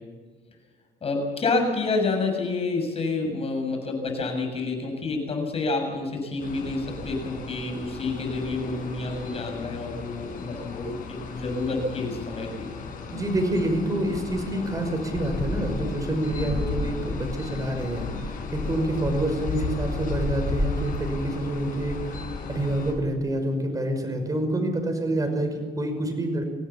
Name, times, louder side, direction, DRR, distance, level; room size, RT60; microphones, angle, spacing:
voice 1, 1.0-12.5, left 3 dB, 35° left, 3 dB, 6.9 m, -28 dB
sound 1, 6.4-22.9, left 3 dB, 55° left, 6.7 m, -33 dB
voice 2, 13.1-22.2 22.5-26.4, right 1 dB, 20° right, 5 dB, 5.4 m, -27 dB
24.5 x 17.0 x 7.1 m, 1.4 s
cardioid pair, 110°, 17 cm